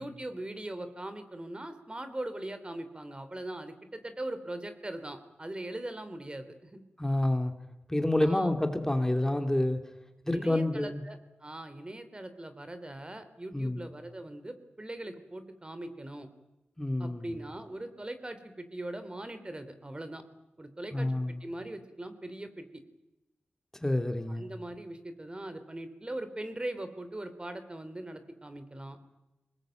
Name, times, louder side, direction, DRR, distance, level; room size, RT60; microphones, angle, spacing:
voice 1, 0.0-6.8 8.2-8.5 10.3-16.3 17.0-20.2 20.6-21.1 21.4-22.8 24.3-29.0, right 1 dB, 25° right, 10 dB, 3.3 m, -40 dB
voice 2, 7.0-7.5 7.9-9.8 10.2-11.0 13.5-13.9 16.8-17.3 20.9-21.4 23.8-24.4, left 1 dB, 10° left, 7 dB, 2.5 m, -28 dB
24.5 x 20.5 x 9.1 m, 0.98 s
cardioid pair, 60°, 4 cm